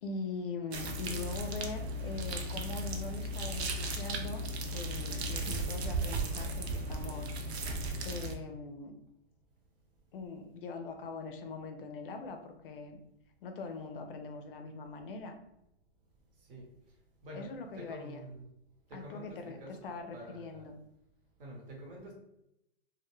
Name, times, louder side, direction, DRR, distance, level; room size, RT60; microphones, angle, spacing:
voice 1, 0.0-4.5 4.7-7.7 8.0-8.9 10.1-13.0 13.4-15.3 17.3-18.2 18.9-20.8, left 3 dB, 55° left, 6 dB, 0.4 m, -42 dB
sound 1, 0.7-8.4, right 1 dB, 75° right, 0.6 m, -36 dB
voice 2, 16.4-16.7 17.2-17.5 17.8-18.5 18.9-20.7 21.4-22.1, equal, 55° right, -1 dB, 1.0 m, -48 dB
2.2 x 2.1 x 3.0 m, 0.84 s
hypercardioid pair, 155°, 32 cm